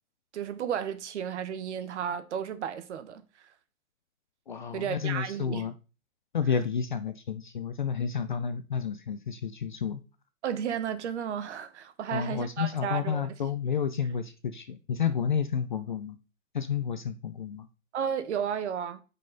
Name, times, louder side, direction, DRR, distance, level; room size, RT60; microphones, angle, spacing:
voice 1, 0.3-3.2 4.7-5.6 10.4-13.3 17.9-19.0, right 8 dB, 55° right, 1.2 m, -33 dB
voice 2, 4.5-5.7 6.3-10.0 12.1-16.2 16.5-17.7, left 7 dB, 35° left, 0.4 m, -31 dB
8.9 x 5.6 x 3.9 m
hypercardioid pair, 170°, 43 cm